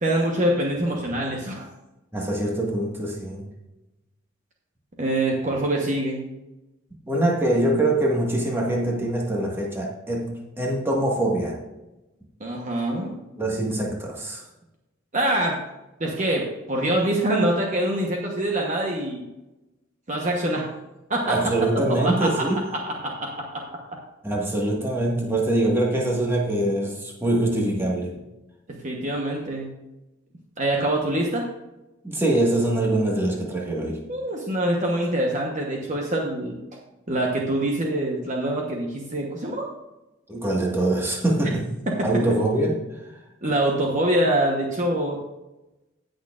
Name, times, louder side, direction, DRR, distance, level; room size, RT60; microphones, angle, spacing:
voice 1, 0.0-1.7 5.0-6.2 12.4-13.1 15.1-15.6 16.0-19.3 20.1-20.7 21.1-21.4 21.9-22.3 23.0-23.6 28.8-29.7 30.6-31.4 34.1-36.6 37.1-39.7 43.4-45.2, right 1 dB, 35° right, -1 dB, 1.1 m, -24 dB
voice 2, 2.1-3.5 7.0-11.6 13.4-14.4 21.2-22.6 24.2-28.2 32.0-34.0 40.3-41.7 42.0-43.1, right 1 dB, 10° right, -2 dB, 1.6 m, -24 dB
17.0 x 6.4 x 2.5 m, 1.0 s
head